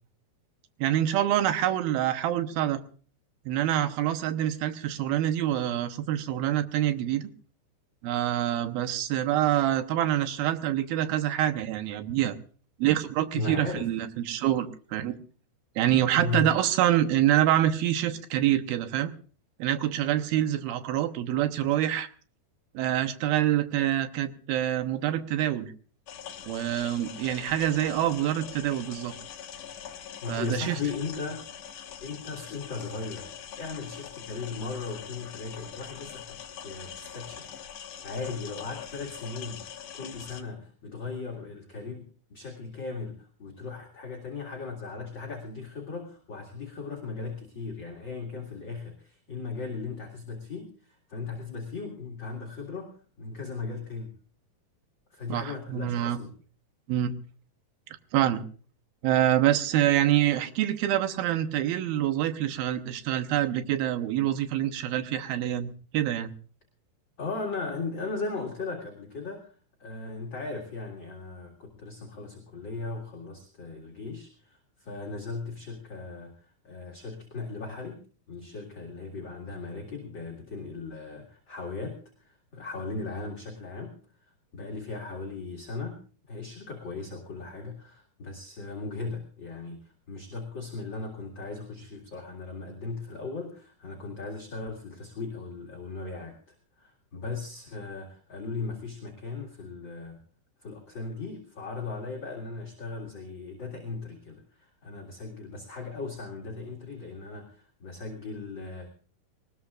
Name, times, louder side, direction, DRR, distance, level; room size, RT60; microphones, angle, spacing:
voice 1, 0.8-2.8 3.5-7.3 8.0-12.4 12.8-15.2 15.8-19.1 19.6-22.1 22.7-25.7 26.4-29.1 30.3-30.8 55.3-56.2 56.9-57.1 58.1-58.4 59.0-66.3, right 12 dB, 75° right, 9 dB, 2.6 m, -26 dB
voice 2, 13.3-13.9 16.1-16.7 30.2-31.4 32.0-33.3 33.6-37.5 37.8-54.1 55.1-56.3 67.2-86.0 86.3-100.2 100.6-108.9, left 4 dB, 35° left, -1 dB, 2.1 m, -37 dB
sound 1, 26.1-40.4, left 9 dB, 80° left, 1.4 m, -43 dB
22.0 x 19.5 x 2.5 m, 0.41 s
omnidirectional pair, 4.8 m